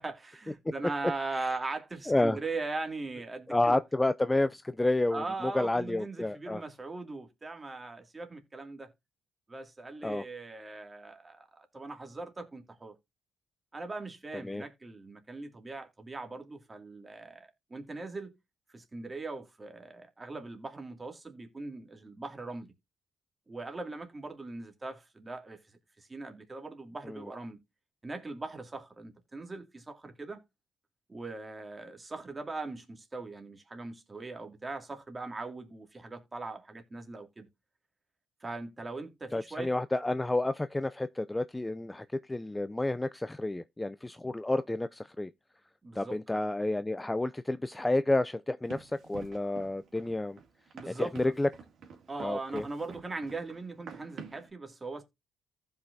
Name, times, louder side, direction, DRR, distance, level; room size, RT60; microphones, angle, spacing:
voice 1, 0.0-3.8 5.1-8.9 9.5-12.9 13.7-18.4 18.7-22.7 23.5-25.6 26.0-27.6 28.0-30.4 31.1-37.5 38.4-39.7 45.8-46.4 50.7-51.3 52.1-55.0, right 3 dB, 25° right, 2.3 m, -40 dB
voice 2, 2.1-2.4 3.5-6.6 10.0-10.2 14.5-14.6 39.3-45.3 46.0-50.4 50.9-51.5 52.2-52.6, left 2 dB, 15° left, 0.4 m, -30 dB
Run, 48.7-54.5, right 6 dB, 65° right, 2.7 m, -49 dB
15.0 x 5.6 x 2.7 m
cardioid pair, 90°, 0 cm